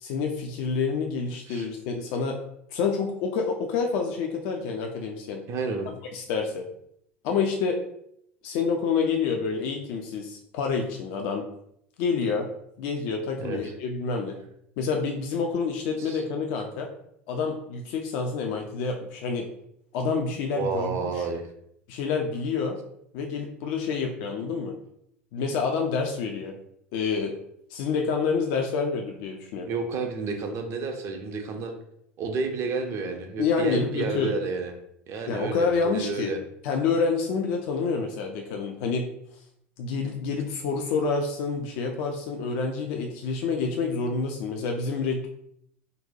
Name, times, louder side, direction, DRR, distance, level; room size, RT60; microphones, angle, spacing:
voice 1, 0.0-2.4 2.7-5.4 6.1-6.7 7.2-7.8 8.4-11.5 12.0-12.5 12.8-14.3 14.8-16.9 17.3-19.5 19.9-21.1 21.9-22.8 23.1-24.7 25.3-26.5 26.9-27.4 27.7-29.7 33.4-34.3 35.3-36.3 36.6-39.1 39.8-45.3, left 5 dB, 55° left, 3 dB, 0.4 m, -28 dB
voice 2, 5.5-5.9 13.4-13.7 16.0-16.2 20.5-21.4 29.7-31.7 32.2-34.7 35.1-36.4, right 4 dB, 40° right, 5 dB, 0.6 m, -30 dB
3.9 x 2.1 x 2.6 m, 0.72 s
figure-of-eight pair, 75°, 7 cm